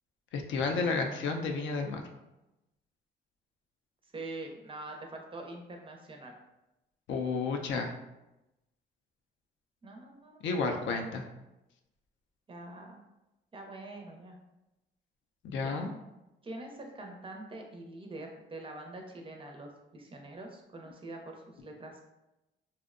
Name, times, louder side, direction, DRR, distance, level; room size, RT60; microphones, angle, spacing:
voice 1, 0.3-2.0 7.1-7.9 10.4-11.2 15.4-15.9, left 4 dB, 70° left, 4 dB, 0.4 m, -31 dB
voice 2, 4.1-6.3 9.8-10.4 12.5-13.0 13.5-14.4 15.5-15.7 16.4-22.1, right 2 dB, 25° right, 2 dB, 0.4 m, -44 dB
2.6 x 2.0 x 2.4 m, 0.96 s
cardioid pair, 90°, 20 cm